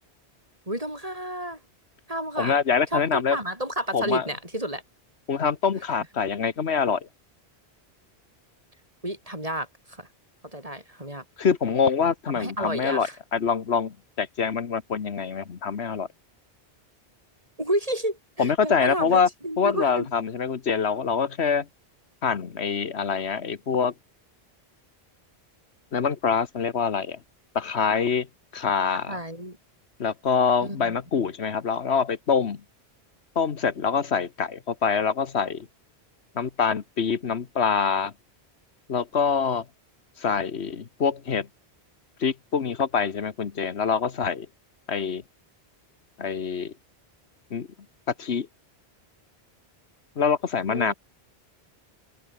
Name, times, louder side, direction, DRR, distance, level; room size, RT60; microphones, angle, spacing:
voice 1, 0.7-1.6 2.1-2.6 2.9-4.8 9.0-10.1 10.4-11.2 12.4-13.2 17.6-20.1 29.1-29.6 30.6-30.9 50.7-50.9, right 1 dB, 35° right, 7.5 m, -31 dB
voice 2, 2.4-3.4 3.9-4.3 5.3-7.1 11.4-16.1 18.4-19.3 19.6-21.7 22.2-23.9 25.9-27.2 27.5-28.3 28.5-29.2 30.0-32.6 33.3-35.7 36.3-38.1 38.9-39.6 40.2-41.5 42.2-44.5 44.9-45.2 46.2-46.7 47.5-47.7 48.2-48.5 50.2-50.9, left 6 dB, 75° left, 1.5 m, -25 dB
omnidirectional pair, 1.1 m